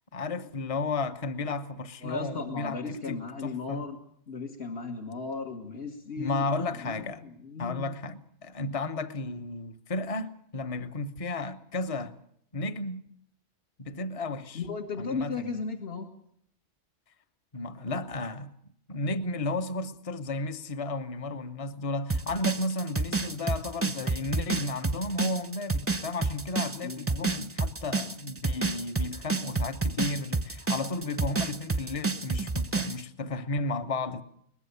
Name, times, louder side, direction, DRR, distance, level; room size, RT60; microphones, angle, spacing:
voice 1, 0.1-3.9 6.2-7.2 7.6-12.1 12.5-13.0 13.8-14.6 15.0-15.6 17.5-18.5 18.9-34.2, left 2 dB, 30° left, 1.0 m, -33 dB
voice 2, 2.0-4.0 4.3-6.5 6.8-7.9 14.5-16.1 26.8-27.0, left 4 dB, 55° left, 2.0 m, -35 dB
sound 1, 22.1-33.0, right 3 dB, 15° right, 0.7 m, -29 dB
22.5 x 20.5 x 6.9 m
omnidirectional pair, 1.2 m